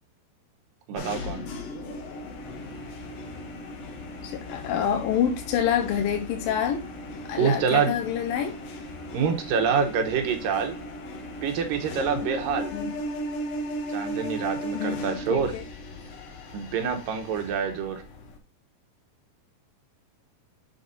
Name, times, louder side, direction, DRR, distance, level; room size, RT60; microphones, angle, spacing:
voice 1, 0.9-1.4 7.4-8.0 9.1-10.8 11.4-12.7 13.9-15.6 16.5-18.0, right 6 dB, 70° right, 5 dB, 2.5 m, -26 dB
sound 1, 1.0-18.4, equal, 60° left, 1.9 m, -37 dB
voice 2, 4.2-6.9 7.3-8.6 12.7-13.0 14.7-15.6, left 9 dB, 75° left, 5 dB, 2.5 m, -27 dB
7.6 x 4.6 x 4.0 m, 0.31 s
omnidirectional pair, 4.4 m